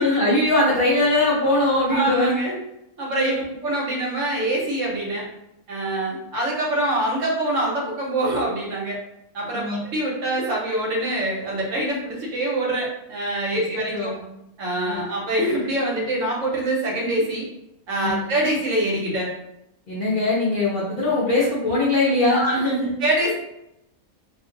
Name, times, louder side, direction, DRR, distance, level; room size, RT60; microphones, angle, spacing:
voice 1, 0.0-2.4 3.2-3.4 9.5-9.8 13.5-13.6 13.9-14.2 14.8-15.0 18.0-18.3 19.9-23.0, left 2 dB, 50° left, -7 dB, 0.7 m, -21 dB
voice 2, 1.9-2.6 3.0-3.3 3.6-5.2 5.7-9.0 9.3-14.1 14.6-17.5 17.9-19.3 22.3-22.6 23.0-23.3, right 1 dB, 65° right, -3 dB, 1.2 m, -24 dB
2.5 x 2.3 x 3.7 m, 0.84 s
omnidirectional pair, 1.5 m